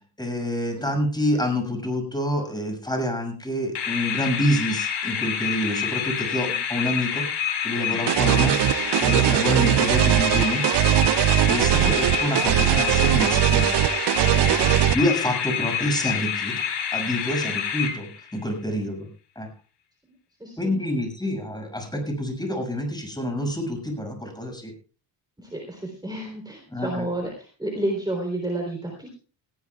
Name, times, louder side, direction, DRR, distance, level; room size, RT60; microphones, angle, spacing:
voice 1, 0.2-7.2 7.6-10.6 11.4-13.7 14.9-16.6 16.9-19.1 19.3-19.5 20.6-24.7 26.7-27.1, left 1 dB, 10° left, 3 dB, 6.5 m, -27 dB
sound 1, 3.7-18.4, left 8 dB, 65° left, 4.8 m, -28 dB
sound 2, 8.1-15.0, right 14 dB, 65° right, 0.6 m, -20 dB
voice 2, 14.2-14.9 15.2-15.3 17.4-17.5 18.6-18.8 20.4-20.7 25.4-29.2, right 1 dB, 10° right, 1 dB, 3.7 m, -31 dB
19.0 x 16.5 x 2.4 m, 0.37 s
cardioid pair, 105°, 46 cm